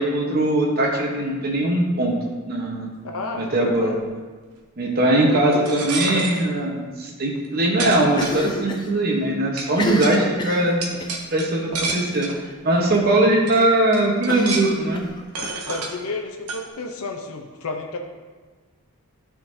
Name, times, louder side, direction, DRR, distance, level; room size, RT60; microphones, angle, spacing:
voice 1, 0.0-2.2 2.5-2.9 3.3-3.9 4.8-10.8 11.3-12.3 12.6-15.0, right 1 dB, 45° right, 0 dB, 0.9 m, -20 dB
voice 2, 3.0-4.0 5.0-6.3 15.7-18.0, left 3 dB, 70° left, 2 dB, 0.6 m, -32 dB
sound 1, 5.5-6.4 7.4-7.5 7.8-8.8 9.6-9.7 10.0-10.2 10.8-12.4 13.1-13.2 13.5-13.6 13.9-14.8 15.3-15.9 16.5-16.6, right 3 dB, 90° right, 0.9 m, -29 dB
Cough, 8.1-8.9 9.2-9.3 9.7-11.2 11.9-12.2 12.5-12.6 12.9-13.0 14.3-15.5, left 1 dB, 20° left, 0.5 m, -30 dB
11.5 x 3.8 x 2.7 m, 1.4 s
head